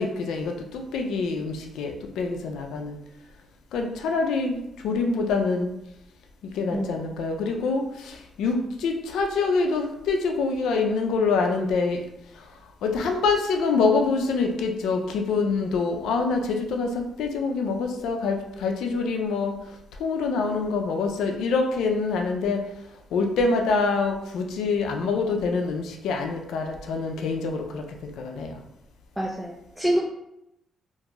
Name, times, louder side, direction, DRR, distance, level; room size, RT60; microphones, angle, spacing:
voice 1, 0.0-3.0 3.7-4.6 4.8-5.7 6.6-12.0 12.8-19.6 20.0-22.6 23.1-28.6, left 4 dB, 85° left, 3 dB, 0.3 m, -25 dB
voice 2, 6.7-7.1 29.2-30.0, right 1 dB, 5° right, -3 dB, 0.3 m, -26 dB
2.5 x 2.3 x 2.9 m, 0.83 s
cardioid pair, 90°, 0 cm